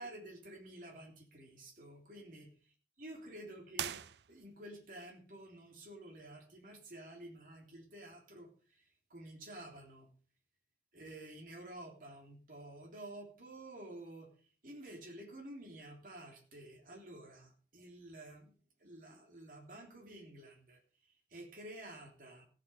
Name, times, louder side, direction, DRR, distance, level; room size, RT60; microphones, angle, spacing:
voice 1, 0.0-4.0 4.3-10.1 10.9-14.3 14.6-18.5 18.8-22.4, right 1 dB, 50° right, 1 dB, 3.2 m, -51 dB
sound 1, 3.7-4.8, right 10 dB, 70° right, 0.5 m, -42 dB
15.5 x 8.8 x 5.1 m, 0.38 s
head